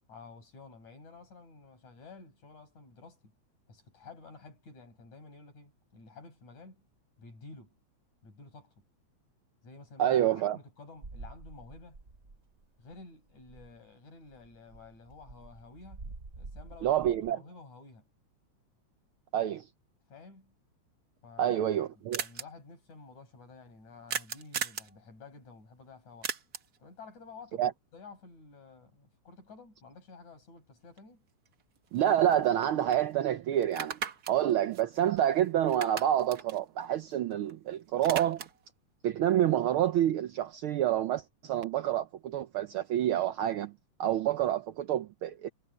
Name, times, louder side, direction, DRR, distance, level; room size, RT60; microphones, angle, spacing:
voice 1, 0.1-3.2 3.7-6.9 7.2-7.8 8.2-8.8 9.6-12.0 12.8-16.1 16.4-18.1 20.1-20.5 21.2-21.6 22.2-26.3 26.8-31.2, left 4 dB, 75° left, 8.3 m, -52 dB
voice 2, 10.0-10.6 16.8-17.4 19.3-19.6 21.4-22.2 27.6-27.7 31.9-34.0 34.3-38.4 39.0-43.7 44.0-45.5, right 11 dB, 85° right, 1.2 m, -28 dB
sound 1, 11.0-12.6 12.9-13.0 13.3-13.8 14.3-17.3, right 3 dB, 25° right, 2.9 m, -48 dB
sound 2, 21.2-21.3 21.4-21.5 21.7-21.8 22.1-22.4 24.1-24.9 26.2-26.8 31.0-31.1 31.5-32.6 32.9-33.0 33.6-35.4 35.7-37.5 37.8-38.7, right 7 dB, 50° right, 1.2 m, -38 dB
omnidirectional pair, 3.3 m